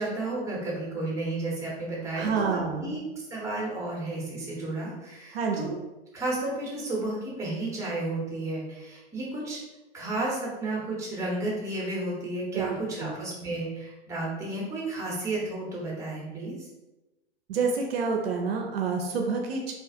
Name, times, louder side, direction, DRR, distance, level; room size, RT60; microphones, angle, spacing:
voice 1, 0.0-3.0 3.3-5.7 6.1-9.6 9.9-16.7, right 2 dB, 10° right, -4 dB, 0.7 m, -32 dB
voice 2, 2.1-3.0 5.3-5.8 12.5-13.1 17.5-19.7, right 5 dB, 65° right, 2 dB, 0.4 m, -28 dB
2.4 x 2.3 x 2.6 m, 1.0 s
figure-of-eight pair, 100°, 34 cm